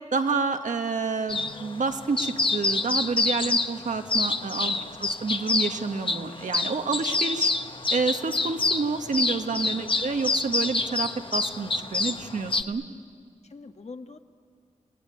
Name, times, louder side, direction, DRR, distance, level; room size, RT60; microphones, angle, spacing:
voice 1, 0.1-7.5 7.9-12.8, right 4 dB, 75° right, 6 dB, 1.5 m, -29 dB
sound 1, 1.3-12.6, left 3 dB, 40° left, 1.2 m, -27 dB
voice 2, 4.6-5.0 9.6-9.9 13.4-14.2, left 4 dB, 60° left, 6 dB, 1.5 m, -44 dB
29.5 x 18.5 x 9.6 m, 2.2 s
wide cardioid pair, 70°, 13 cm